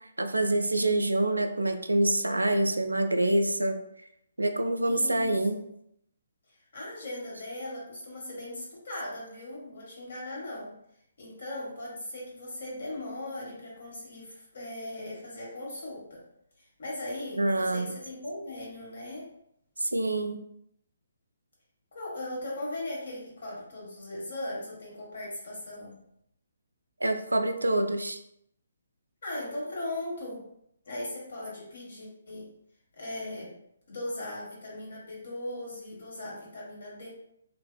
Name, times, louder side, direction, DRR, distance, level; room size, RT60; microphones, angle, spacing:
voice 1, 0.2-3.8 4.4-5.6 17.4-17.9 19.8-20.4 27.0-28.2, right 1 dB, 85° right, 7 dB, 0.3 m, -26 dB
voice 2, 4.8-5.7 6.7-10.8 11.2-16.2 16.6-19.3 21.9-26.0 29.2-30.5 30.8-32.5 33.0-33.5 33.9-37.1, left 1 dB, 60° left, -4 dB, 1.3 m, -38 dB
2.6 x 2.4 x 2.2 m, 0.75 s
figure-of-eight pair, 140°, 0 cm